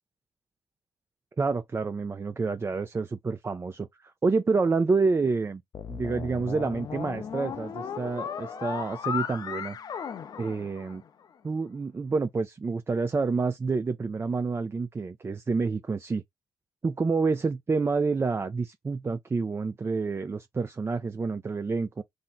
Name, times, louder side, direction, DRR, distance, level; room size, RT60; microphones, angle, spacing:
voice 1, 1.4-5.6 5.9-9.8 10.4-11.0 11.4-16.2 16.8-22.0, right 4 dB, 30° right, 0.5 m, -28 dB
sound 1, 5.7-11.2, left 7 dB, 50° left, 0.4 m, -36 dB
2.6 x 2.1 x 4.0 m
hypercardioid pair, 45°, 9 cm